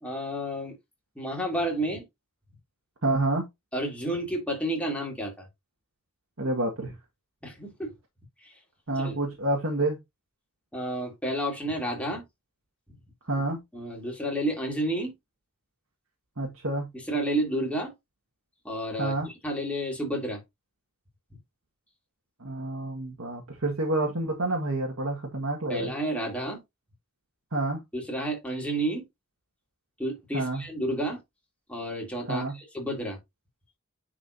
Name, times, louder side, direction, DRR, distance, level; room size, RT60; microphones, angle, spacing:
voice 1, 0.0-0.7 1.1-2.0 3.7-5.5 7.4-7.9 8.4-8.5 8.9-9.2 10.7-12.2 13.7-15.1 16.9-17.9 18.6-20.4 25.7-26.6 27.9-29.0 30.0-31.2 31.7-33.2, right 1 dB, 5° left, 3.1 m, -31 dB
voice 2, 3.0-3.4 6.4-6.9 8.9-10.0 13.3-13.6 16.4-16.9 19.0-19.3 22.4-25.9 27.5-27.8 30.3-30.6 32.3-32.5, right 2 dB, 75° right, 1.8 m, -28 dB
9.7 x 4.9 x 2.7 m
head